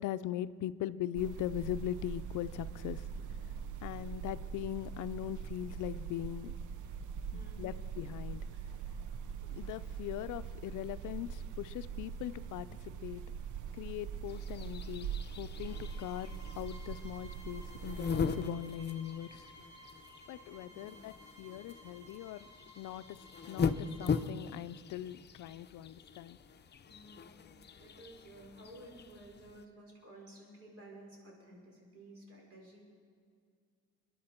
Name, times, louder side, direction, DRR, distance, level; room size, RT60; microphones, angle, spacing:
voice 1, 0.0-3.1 3.8-6.5 7.3-8.4 9.4-13.2 13.7-15.1 15.4-19.5 20.3-22.5 22.8-23.2 23.5-26.4, left 12 dB, 80° left, 14 dB, 0.5 m, -40 dB
sound 1, 1.1-18.4, right 7 dB, 75° right, 0.7 m, -42 dB
voice 2, 3.0-3.3 7.3-7.9 20.6-21.0 26.8-27.4 27.8-32.8, right 1 dB, 50° right, -1 dB, 4.9 m, -54 dB
sound 2, 14.3-29.7, left 6 dB, 35° left, 0.7 m, -40 dB
sound 3, 15.6-24.2, right 1 dB, 15° left, 4.0 m, -57 dB
21.5 x 11.0 x 4.4 m, 2.1 s
cardioid pair, 90°, 30 cm